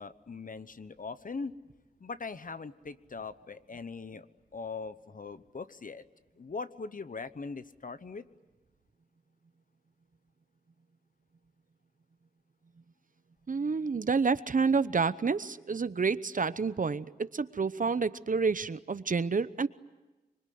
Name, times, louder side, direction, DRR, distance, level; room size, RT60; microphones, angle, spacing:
voice 1, 0.0-1.5 2.0-4.3 4.5-6.0 6.4-8.2, left 4 dB, 55° left, 13 dB, 1.0 m, -41 dB
voice 2, 13.5-19.7, right 4 dB, 50° right, 15 dB, 0.9 m, -29 dB
25.5 x 24.0 x 9.5 m, 1.1 s
wide cardioid pair, 90°, 17 cm